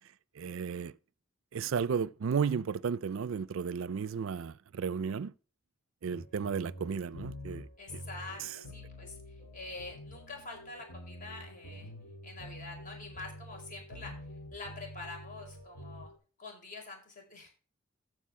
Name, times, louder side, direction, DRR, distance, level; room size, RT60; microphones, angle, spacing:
voice 1, 0.4-0.9 1.5-5.3 6.0-7.7 7.9-8.0, right 6 dB, 70° right, 0.4 m, -33 dB
sound 1, 6.1-16.2, left 1 dB, 80° left, 2.9 m, -47 dB
voice 2, 7.8-11.9 12.2-14.2 14.5-16.1 16.4-17.5, left 3 dB, 40° left, 4.5 m, -46 dB
14.5 x 4.8 x 4.8 m
head